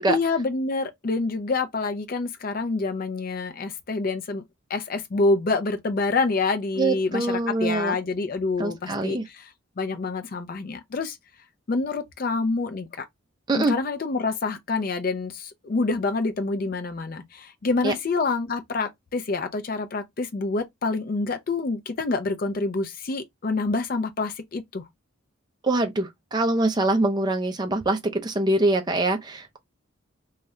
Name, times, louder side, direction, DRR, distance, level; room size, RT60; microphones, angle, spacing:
voice 1, 0.1-4.4 4.7-9.5 9.8-11.2 11.7-13.1 13.5-24.8, left 3 dB, 45° left, 0.4 m, -27 dB
voice 2, 6.8-8.0 8.6-9.2 13.5-13.7 17.8-17.9 25.6-29.6, right 2 dB, 20° right, 0.4 m, -24 dB
2.6 x 2.3 x 3.1 m
head